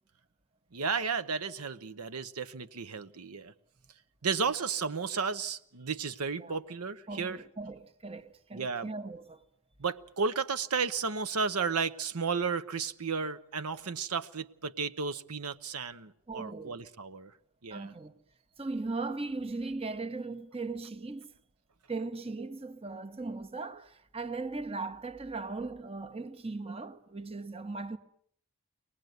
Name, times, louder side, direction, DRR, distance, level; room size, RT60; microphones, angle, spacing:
voice 1, 0.7-3.5 4.2-7.4 8.5-8.9 9.8-17.3 17.6-17.9, right 5 dB, 85° right, 0.9 m, -33 dB
voice 2, 7.1-9.4 16.3-16.8 17.7-18.1 18.6-21.3 21.9-28.0, right 3 dB, 25° right, 1.0 m, -38 dB
24.0 x 19.0 x 9.3 m
head